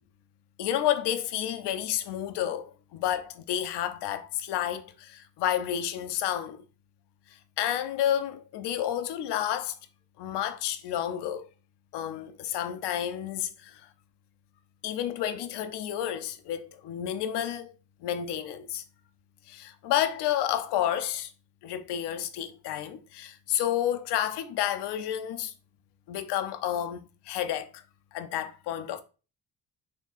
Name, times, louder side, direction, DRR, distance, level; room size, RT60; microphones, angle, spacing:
voice 1, 0.6-6.6 7.6-9.8 10.2-11.5 11.9-13.9 14.8-17.7 18.0-18.8 19.5-21.3 21.6-25.5 26.1-27.8 28.1-29.0, left 11 dB, 60° left, 0.6 m, -30 dB
3.5 x 2.9 x 2.4 m
hypercardioid pair, 50°, 46 cm